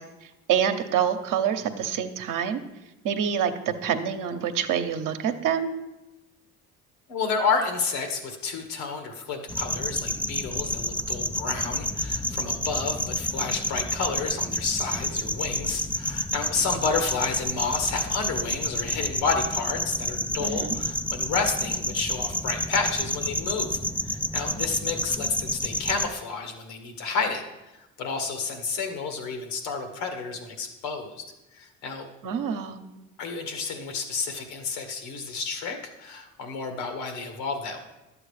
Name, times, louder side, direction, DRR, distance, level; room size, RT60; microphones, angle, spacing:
voice 1, 0.5-2.6 3.0-5.7 20.4-20.8 32.2-32.8, right 8 dB, 55° right, 7 dB, 1.0 m, -26 dB
voice 2, 7.1-23.8 24.0-27.4 28.0-31.2 31.6-32.1 33.2-37.8, left 4 dB, 80° left, 6 dB, 1.6 m, -30 dB
sound 1, 9.5-26.1, left 1 dB, 5° left, 0.4 m, -29 dB
11.5 x 7.7 x 3.3 m, 1.0 s
hypercardioid pair, 65°, 38 cm